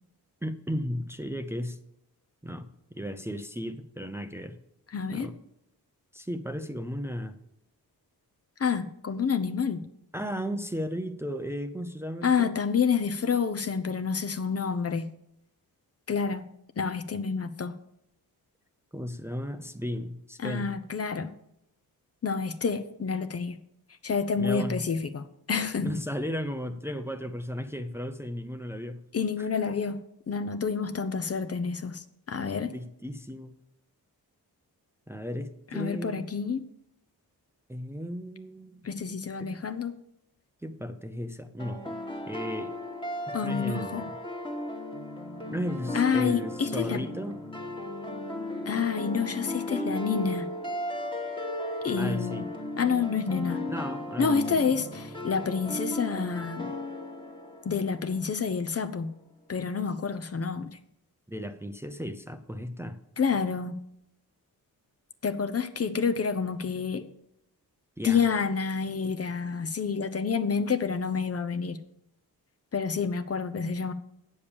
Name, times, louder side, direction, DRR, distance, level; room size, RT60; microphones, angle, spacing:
voice 1, 0.4-1.8 2.4-4.6 5.1-5.4 6.1-7.4 10.1-12.6 18.9-20.8 24.4-24.8 25.8-29.0 29.4-29.5 32.7-33.5 35.1-36.3 37.7-38.9 39.4-39.5 40.6-42.0 42.3-42.8 43.3-44.1 45.5-47.4 52.0-52.5 53.7-54.6 61.3-63.0 68.0-68.3, equal, 5° right, 0.6 m, -35 dB
voice 2, 4.9-5.3 8.6-9.8 12.2-15.1 16.1-16.5 16.8-17.8 20.4-21.3 22.2-23.6 24.0-25.9 29.1-32.7 35.7-36.6 38.8-40.0 43.3-44.0 45.9-47.0 48.7-50.5 51.8-52.5 52.8-53.6 54.2-56.8 57.6-59.1 59.5-60.8 63.2-63.8 65.2-67.1 68.0-71.8 72.7-73.9, left 6 dB, 40° left, 0.7 m, -28 dB
sound 1, 41.6-58.5, left 1 dB, 15° left, 1.5 m, -35 dB
8.4 x 7.1 x 6.9 m
cardioid pair, 75°, 38 cm